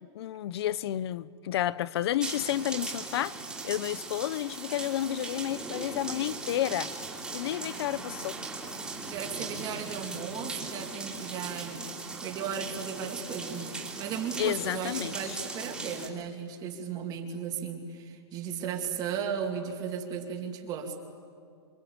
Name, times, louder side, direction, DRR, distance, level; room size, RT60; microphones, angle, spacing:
voice 1, 0.1-3.4 3.6-6.9 7.3-8.4 14.4-15.4, left 12 dB, 65° left, 0.8 m, -31 dB
sound 1, 2.2-16.1, right 3 dB, 5° right, 3.1 m, -39 dB
voice 2, 9.1-11.8 12.2-21.0, right 7 dB, 25° right, 2.7 m, -36 dB
27.0 x 24.0 x 8.9 m
supercardioid pair, 165°, 15 cm